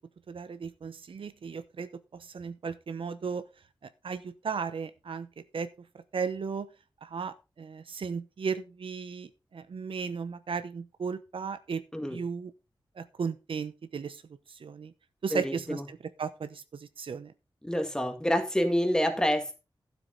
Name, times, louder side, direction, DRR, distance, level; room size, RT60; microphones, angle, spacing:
voice 1, 0.3-3.4 4.0-5.3 5.5-5.7 6.1-6.7 7.0-11.8 12.1-12.5 13.0-14.2 14.5-14.9 15.2-17.3, right 5 dB, 80° right, 13 dB, 0.8 m, -35 dB
voice 2, 15.3-15.8 17.6-19.6, equal, 10° left, 6 dB, 1.9 m, -27 dB
12.5 x 7.6 x 3.9 m, 0.29 s
wide cardioid pair, 120°, 9 cm